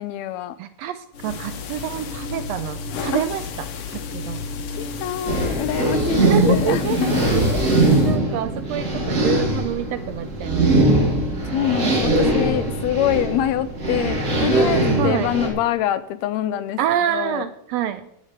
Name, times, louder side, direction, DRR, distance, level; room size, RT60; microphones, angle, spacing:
voice 1, 0.0-0.5 3.1-3.2 4.8-7.2 11.5-16.8 17.1-17.5, left 11 dB, 80° left, 13 dB, 1.7 m, -25 dB
voice 2, 0.6-4.4 6.2-7.2 7.5-11.1 15.0-15.3 16.8-18.1, right 11 dB, 80° right, 11 dB, 1.5 m, -27 dB
sound 1, 1.1-8.2, left 5 dB, 60° left, 1.7 m, -32 dB
sound 2, 5.3-15.5, right 2 dB, 30° right, 2.3 m, -21 dB
9.8 x 7.4 x 6.3 m, 0.75 s
omnidirectional pair, 3.3 m